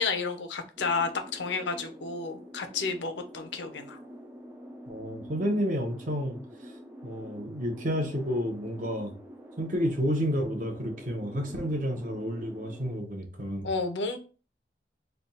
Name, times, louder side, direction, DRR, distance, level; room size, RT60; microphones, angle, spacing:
voice 1, 0.0-4.0 13.6-14.2, left 4 dB, 80° left, 6 dB, 0.6 m, -31 dB
sound 1, 0.8-13.0, equal, 10° right, 0.4 m, -47 dB
voice 2, 4.9-6.4 7.0-9.1 9.6-13.7, equal, 45° right, 3 dB, 0.9 m, -30 dB
3.3 x 2.3 x 4.0 m, 0.35 s
head